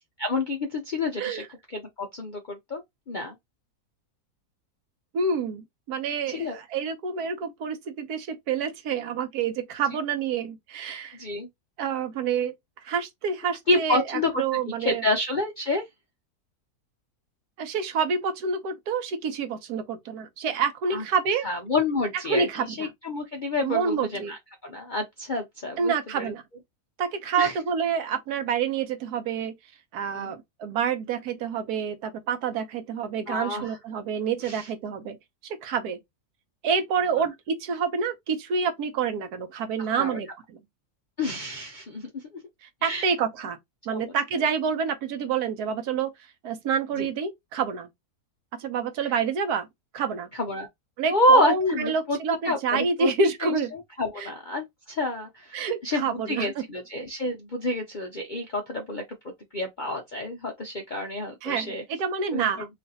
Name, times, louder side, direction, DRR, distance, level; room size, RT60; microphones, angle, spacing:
voice 1, 0.2-3.4 6.3-6.6 11.1-11.5 13.7-14.4 14.8-15.9 20.9-21.0 21.4-26.3 27.4-27.5 30.1-30.3 33.3-33.8 34.4-34.7 37.2-37.3 39.8-40.2 41.2-42.4 42.8-43.1 43.9-44.1 47.0-47.1 50.3-50.7 51.1-52.2 52.4-53.1 53.4-59.0 59.5-61.8 62.3-62.5, left 1 dB, 55° left, 0.5 m, -28 dB
voice 2, 5.1-11.2 11.8-12.5 12.8-14.0 14.4-15.0 17.6-21.4 22.3-22.9 23.6-24.3 25.8-26.4 27.0-29.5 29.9-35.2 35.6-36.0 36.6-40.3 42.8-43.6 43.9-46.1 46.4-47.9 48.6-49.7 49.9-50.3 51.0-53.7 54.2-54.3 55.5-56.5 61.4-61.7 62.0-62.7, right 6 dB, 75° right, 1.2 m, -28 dB
3.1 x 2.5 x 4.0 m
omnidirectional pair, 1.7 m